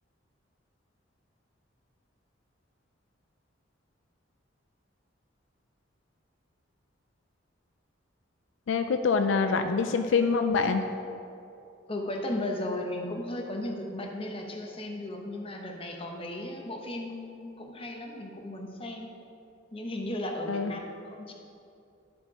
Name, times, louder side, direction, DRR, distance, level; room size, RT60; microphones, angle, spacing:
voice 1, 8.7-10.8 20.5-20.7, left 5 dB, 75° left, 7 dB, 0.4 m, -25 dB
voice 2, 11.9-19.1 19.7-20.8 21.1-21.3, left 1 dB, 30° left, 2 dB, 0.9 m, -35 dB
11.0 x 4.4 x 4.8 m, 2.6 s
head